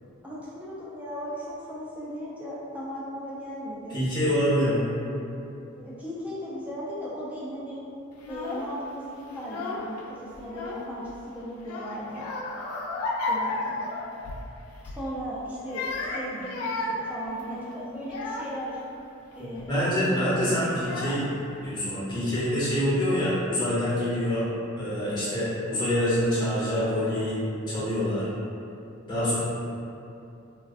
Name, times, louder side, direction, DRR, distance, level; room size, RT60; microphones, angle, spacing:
voice 1, 0.2-4.0 4.6-4.8 5.8-7.8 8.3-12.3 13.3-13.9 14.8-18.8 19.3-20.6, equal, 5° right, -8 dB, 0.3 m, -37 dB
voice 2, 3.9-4.9 19.6-21.2 21.6-24.5 24.7-27.4 27.7-28.3 29.1-29.4, equal, 20° left, -10 dB, 0.7 m, -26 dB
Child speech kid speaking / Crying sobbing, 8.2-8.7 9.3-10.0 10.3-11.2 11.6-14.5 14.8-15.1 15.6-18.7 19.3-19.7 20.5-20.6 20.8-21.5, left 2 dB, 85° left, 0.3 m, -33 dB
2.5 x 2.2 x 2.3 m, 2.7 s
head